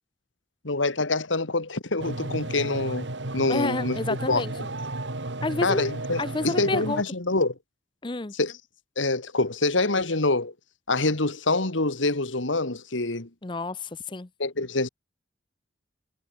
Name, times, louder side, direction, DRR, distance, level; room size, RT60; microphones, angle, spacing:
voice 1, 0.6-3.1 3.3-4.0 4.3-4.4 5.6-7.5 8.3-8.6 9.0-10.5 10.9-13.3 14.4-14.9, left 2 dB, 85° left, 2.3 m, -25 dB
sound 1, 2.0-7.0, right 2 dB, 70° right, 2.1 m, -33 dB
voice 2, 3.5-4.5 5.4-5.8 6.2-7.0 8.0-8.3 13.4-14.3, left 2 dB, 25° left, 0.6 m, -29 dB
head